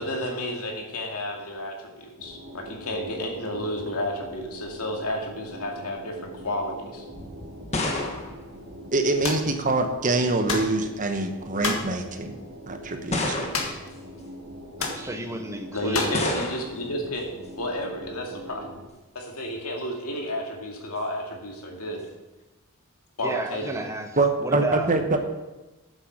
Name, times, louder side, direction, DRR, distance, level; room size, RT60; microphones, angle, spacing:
voice 1, 0.0-7.0 15.7-17.3 17.6-18.7 19.1-22.0 23.2-23.9, left 1 dB, 90° left, 1 dB, 2.3 m, -31 dB
sound 1, 2.2-18.9, equal, 55° right, 2.0 m, -43 dB
sound 2, 7.1-9.5 10.5-11.0 11.8-11.9 13.1-13.9 16.1-16.9, left 2 dB, 30° left, 1.4 m, -30 dB
voice 2, 8.9-12.4 12.7-13.5 24.2-25.2, right 2 dB, 35° right, 6 dB, 1.1 m, -24 dB
sound 3, 9.2-9.5 10.5-10.8 11.6-11.9 13.5-13.9 14.2-14.3 14.8-15.0 15.9-16.2, left 4 dB, 70° left, 1.6 m, -29 dB
voice 3, 14.8-16.2 23.2-25.2, right 2 dB, 15° right, 6 dB, 0.8 m, -33 dB
9.2 x 7.8 x 6.3 m, 1.1 s
head